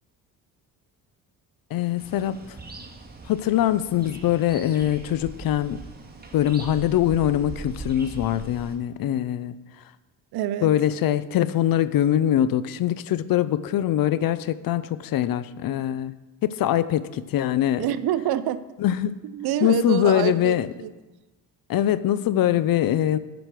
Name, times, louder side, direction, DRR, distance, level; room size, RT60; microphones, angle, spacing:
voice 1, 1.7-2.4 3.3-5.8 6.3-9.5 10.6-16.1 16.4-17.9 18.8-19.2 19.6-20.7 21.7-23.2, left 11 dB, 55° left, 0.6 m, -23 dB
sound 1, 2.0-8.8, right 3 dB, 25° right, 1.8 m, -41 dB
voice 2, 10.3-10.7 17.8-18.6 19.2-20.9, right 11 dB, 65° right, 0.6 m, -26 dB
8.8 x 5.3 x 6.0 m
supercardioid pair, 65°, 41 cm